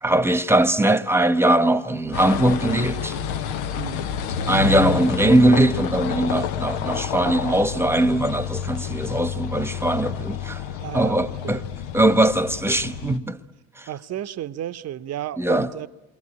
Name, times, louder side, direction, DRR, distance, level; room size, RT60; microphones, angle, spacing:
voice 1, 0.0-3.2 4.5-10.6 10.9-11.6 11.9-13.4 13.8-13.9 15.4-15.7, right 1 dB, 5° right, 1.3 m, -20 dB
sound 1, 2.1-13.2, left 8 dB, 65° left, 1.0 m, -29 dB
voice 2, 3.8-4.1 10.8-11.7 13.9-15.9, right 11 dB, 45° right, 0.9 m, -33 dB
28.5 x 24.0 x 8.8 m
figure-of-eight pair, 50°, 35 cm